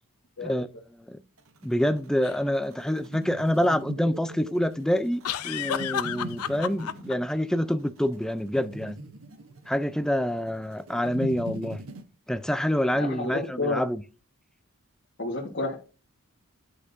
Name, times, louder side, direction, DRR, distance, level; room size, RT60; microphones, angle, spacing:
sound 1, 1.4-12.0, right 1 dB, 65° right, 0.8 m, -42 dB
voice 1, 1.6-9.0 9.7-11.8 12.3-14.0, equal, 5° left, 0.3 m, -27 dB
sound 2, 2.2-2.4 5.2-7.1, left 9 dB, 85° left, 0.5 m, -31 dB
voice 2, 12.9-13.8 15.2-15.7, left 2 dB, 55° left, 1.5 m, -30 dB
10.0 x 6.0 x 2.6 m
head